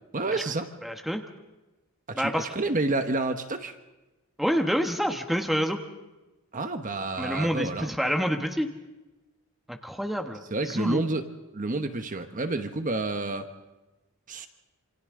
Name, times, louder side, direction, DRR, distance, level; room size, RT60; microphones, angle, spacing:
voice 1, 0.1-0.7 2.1-3.7 6.5-7.9 10.5-11.2 11.5-13.5 14.3-14.5, right 2 dB, 40° right, 7 dB, 1.1 m, -29 dB
voice 2, 0.8-1.2 2.1-2.5 4.4-5.8 7.2-8.7 9.7-11.0, equal, ahead, 4 dB, 1.2 m, -28 dB
27.5 x 25.5 x 3.8 m, 1.1 s
head